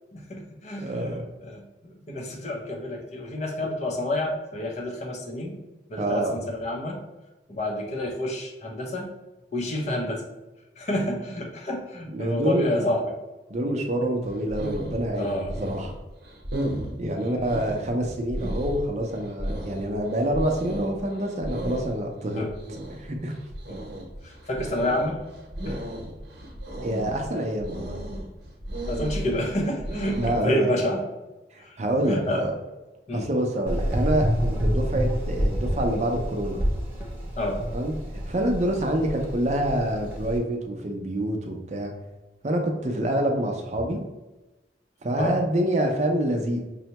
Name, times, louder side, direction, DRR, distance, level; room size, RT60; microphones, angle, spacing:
voice 1, 0.1-1.1 1.4-5.5 5.9-7.0 7.5-9.1 9.5-10.2 10.8-13.1 15.2-15.5 17.2-17.4 22.4-22.5 24.5-25.2 25.7-25.8 28.9-30.2 30.4-31.0 32.1-32.4 33.1-33.2 37.4-37.6 45.2-45.3, left 1 dB, 40° left, 1 dB, 0.6 m, -29 dB
voice 2, 0.8-1.2 6.0-6.4 12.1-12.9 13.5-15.9 17.0-22.5 23.0-23.3 26.8-28.0 30.2-30.7 31.5-32.5 33.1-36.6 37.7-37.9 38.2-41.9 42.4-44.0 45.0-46.6, right 1 dB, 40° right, 2 dB, 0.5 m, -26 dB
sound 1, 14.2-30.4, right 1 dB, 70° right, 0.8 m, -34 dB
Gurgling / Engine, 33.7-40.4, equal, 10° right, 0.8 m, -28 dB
5.4 x 2.1 x 2.8 m, 1.1 s
head